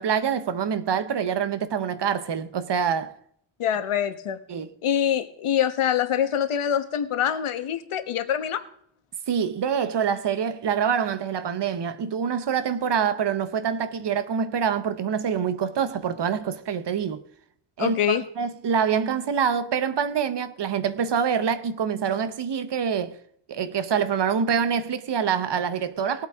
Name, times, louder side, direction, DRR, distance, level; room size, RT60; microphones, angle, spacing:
voice 1, 0.0-3.2 4.5-4.7 9.3-17.2 17.8-23.2 23.5-26.3, right 7 dB, 55° right, 0.9 m, -25 dB
voice 2, 3.6-4.4 4.8-8.6 17.8-18.2, left 9 dB, 80° left, 1.3 m, -25 dB
19.5 x 8.4 x 3.6 m
wide cardioid pair, 170°, 50 cm